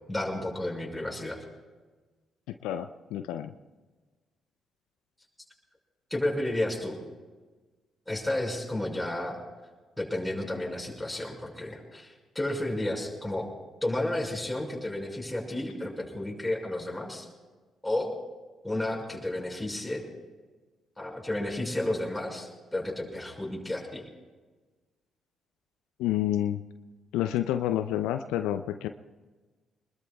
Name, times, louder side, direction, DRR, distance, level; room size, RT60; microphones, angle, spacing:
voice 1, 0.1-1.4 6.1-7.0 8.1-9.4 10.0-13.5 13.8-17.3 17.8-18.1 18.6-20.0 21.0-24.0, left 1 dB, 10° left, -1 dB, 5.4 m, -32 dB
voice 2, 2.6-3.5 26.0-26.6 27.1-28.9, left 12 dB, 75° left, 9 dB, 0.5 m, -29 dB
25.0 x 20.5 x 2.3 m, 1.3 s
hypercardioid pair, 45°, 0 cm